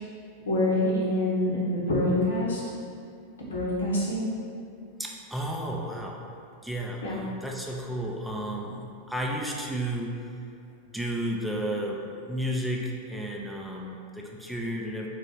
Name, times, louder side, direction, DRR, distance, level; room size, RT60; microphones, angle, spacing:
voice 1, 0.5-2.6 3.5-4.3 7.0-7.2, left 1 dB, 70° left, -5 dB, 0.9 m, -26 dB
voice 2, 5.0-6.2 6.6-10.2 10.9-15.1, equal, ahead, -2 dB, 0.4 m, -32 dB
3.5 x 2.5 x 4.4 m, 2.4 s
figure-of-eight pair, 90°, 0 cm